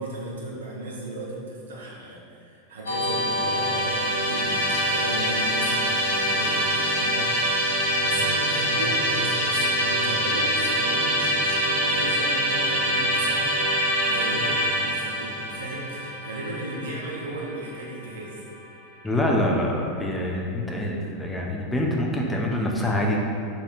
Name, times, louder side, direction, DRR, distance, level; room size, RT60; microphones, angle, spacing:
voice 1, 0.0-18.4, right 1 dB, 75° right, -4 dB, 0.4 m, -36 dB
Musical instrument, 2.9-18.0, equal, 80° left, 0.6 m, -25 dB
voice 2, 19.0-23.2, left 1 dB, 10° left, -1 dB, 0.4 m, -25 dB
2.9 x 2.3 x 2.2 m, 2.5 s
hypercardioid pair, 90°, 0 cm